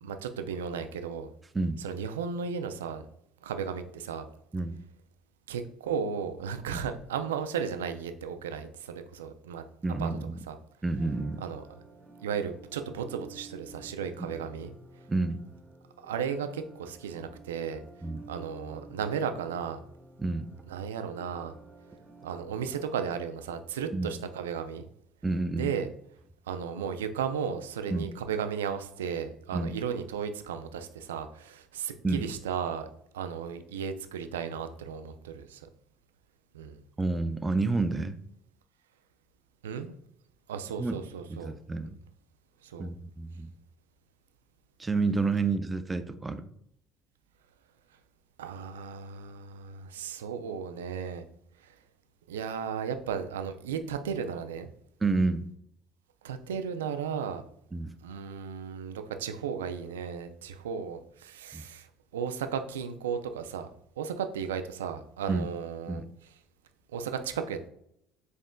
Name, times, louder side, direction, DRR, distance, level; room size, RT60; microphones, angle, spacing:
voice 1, 0.0-1.3 1.8-3.0 3.4-4.2 5.5-9.6 10.0-10.1 10.5-10.6 11.4-11.6 12.2-14.7 16.0-17.8 18.3-19.8 20.7-21.5 22.2-24.8 25.5-25.9 26.5-32.9 33.1-35.7 36.5-36.8 39.6-39.9 40.5-41.5 42.6-42.9 48.4-51.2 51.6-51.7 52.3-54.7 56.2-57.4 58.0-61.9 62.1-63.7 64.0-66.0 66.9-67.7, right 7 dB, 90° right, 8 dB, 0.3 m, -35 dB
voice 2, 9.8-10.4 10.8-11.4 15.1-15.4 18.0-18.2 20.2-20.5 23.9-24.1 25.2-25.7 27.9-28.1 29.5-29.7 32.0-32.2 37.0-38.2 40.8-41.0 41.3-42.0 42.8-43.5 44.8-46.5 55.0-55.5 57.7-57.9 61.5-61.7 65.3-65.5 65.9-66.1, right 3 dB, 20° right, 11 dB, 0.4 m, -29 dB
sound 1, 11.0-23.0, right 3 dB, 5° right, 1.3 m, -52 dB
5.3 x 3.6 x 2.2 m, 0.72 s
hypercardioid pair, 70°, 0 cm